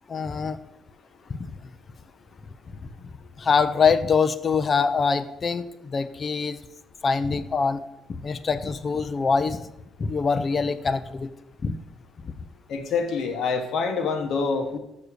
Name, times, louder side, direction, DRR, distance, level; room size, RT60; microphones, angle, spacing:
voice 1, 0.1-0.6 1.3-1.4 3.4-6.6 7.0-7.8 8.2-9.6 10.0-11.3 11.6-11.7 12.2-12.3, left 5 dB, 40° left, 12 dB, 0.6 m, -24 dB
voice 2, 12.7-14.8, left 5 dB, 70° left, 4 dB, 1.3 m, -26 dB
6.6 x 6.2 x 6.7 m, 0.88 s
cardioid pair, 90°, 0 cm